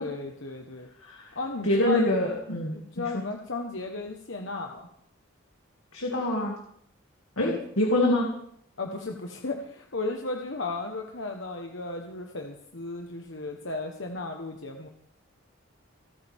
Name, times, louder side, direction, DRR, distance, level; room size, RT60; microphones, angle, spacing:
voice 1, 0.0-0.9 1.3-2.0 2.7-4.9 7.4-7.6 8.8-14.9, left 3 dB, 65° left, 2 dB, 1.3 m, -34 dB
voice 2, 1.6-3.2 5.9-6.6 7.4-8.3, left 1 dB, 85° left, -1 dB, 2.5 m, -25 dB
28.5 x 9.7 x 3.6 m, 0.68 s
head